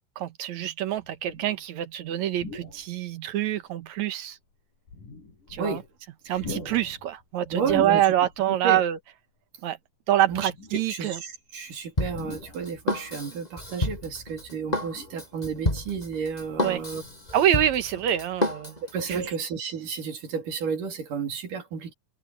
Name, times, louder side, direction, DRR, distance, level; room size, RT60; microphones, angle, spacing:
voice 1, 0.2-4.4 5.5-5.8 6.3-9.0 9.6-9.8 10.1-11.2 16.6-16.8 17.3-18.8 19.1-19.2, right 11 dB, 65° right, 2.4 m, -25 dB
sound 1, 1.0-1.6 2.3-3.0 3.6-3.7 4.7-6.0 6.3-8.5 8.8-9.0 10.2-11.0 12.0-13.0 14.0-15.4 15.9-17.6 17.9-18.1, left 3 dB, 75° left, 8.8 m, -43 dB
voice 2, 7.5-8.1 8.5-8.8 10.3-17.0 18.9-21.9, right 6 dB, 85° right, 4.7 m, -32 dB
Drum kit, 12.0-19.3, left 1 dB, 10° left, 7.0 m, -30 dB
omnidirectional pair, 3.7 m